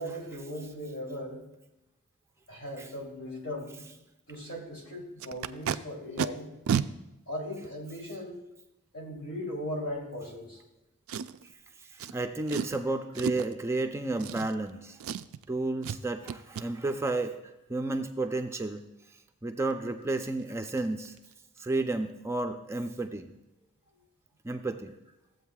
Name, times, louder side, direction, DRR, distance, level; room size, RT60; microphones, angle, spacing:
voice 1, 0.0-1.4 2.5-3.8 4.3-6.5 7.3-8.4 8.9-10.6, equal, 70° left, -1 dB, 3.0 m, -38 dB
Packing tape duct tape, 5.2-5.8 6.2-6.3 6.7-6.9 7.6-7.7 11.1-11.5 12.0-12.1 12.5-12.8 13.2-13.5 14.2-14.7 15.0-15.5 15.8-16.0 16.3-16.7 19.7-19.8 20.1-20.3 20.6-20.8 21.1-21.3 21.6-21.7, right 7 dB, 90° right, 0.4 m, -32 dB
voice 2, 12.0-15.0 15.5-17.4 17.7-18.8 19.4-21.2 21.6-23.3 24.4-24.9, right 2 dB, 15° right, 5 dB, 0.4 m, -31 dB
15.0 x 7.9 x 2.3 m, 0.94 s
head